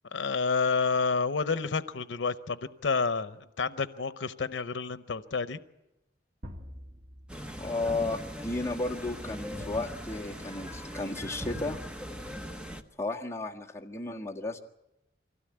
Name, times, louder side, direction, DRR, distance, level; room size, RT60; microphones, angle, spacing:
voice 1, 0.1-5.6, left 4 dB, 85° left, 13 dB, 0.7 m, -29 dB
sound 1, 6.4-8.4, equal, 50° right, 1.8 m, -47 dB
sound 2, 7.3-12.8, equal, 5° right, 1.0 m, -40 dB
voice 2, 7.6-11.8 13.0-14.6, left 2 dB, 15° left, -2 dB, 1.6 m, -33 dB
24.5 x 16.5 x 8.7 m, 0.93 s
head